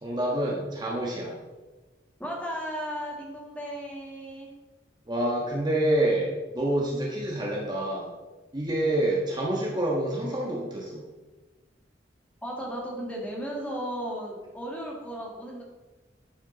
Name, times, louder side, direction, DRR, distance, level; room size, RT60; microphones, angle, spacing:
voice 1, 0.0-1.4 5.1-8.1 8.5-11.0, right 1 dB, 25° right, -3 dB, 1.3 m, -27 dB
voice 2, 2.2-4.5 12.4-15.6, equal, 10° left, -3 dB, 1.9 m, -35 dB
11.5 x 6.2 x 3.9 m, 1.2 s
head